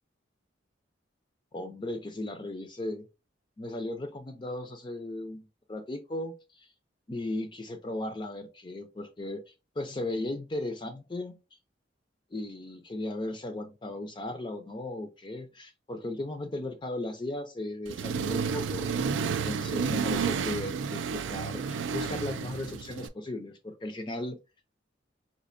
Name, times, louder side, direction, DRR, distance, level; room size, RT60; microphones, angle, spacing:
voice 1, 1.5-3.0 3.6-6.7 7.1-11.3 12.3-18.9 19.2-24.4, left 1 dB, 25° left, 6 dB, 0.4 m, -36 dB
Accelerating revving vroom, 17.9-23.1, right 5 dB, 80° right, 0.3 m, -31 dB
4.2 x 2.5 x 2.5 m, 0.28 s
head